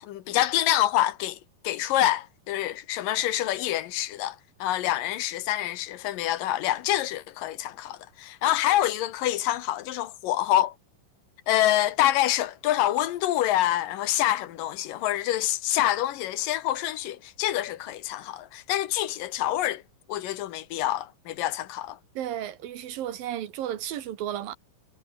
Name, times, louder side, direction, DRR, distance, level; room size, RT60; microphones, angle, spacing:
voice 1, 0.0-1.4 1.6-10.7 11.5-19.8 20.1-22.0, left 13 dB, 75° left, 2.8 m, -26 dB
voice 2, 22.2-24.6, right 11 dB, 85° right, 3.4 m, -33 dB
omnidirectional pair, 4.0 m